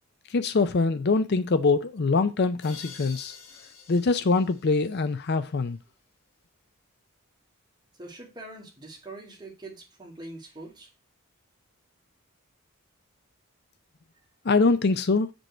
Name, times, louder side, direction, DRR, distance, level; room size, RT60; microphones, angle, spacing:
voice 1, 0.3-3.4 3.9-5.8 14.5-15.3, left 3 dB, 50° left, 0.5 m, -23 dB
sound 1, 2.6-5.5, left 6 dB, 85° left, 2.3 m, -48 dB
voice 2, 8.0-10.9, right 2 dB, 20° right, 2.8 m, -43 dB
7.9 x 5.3 x 4.3 m
head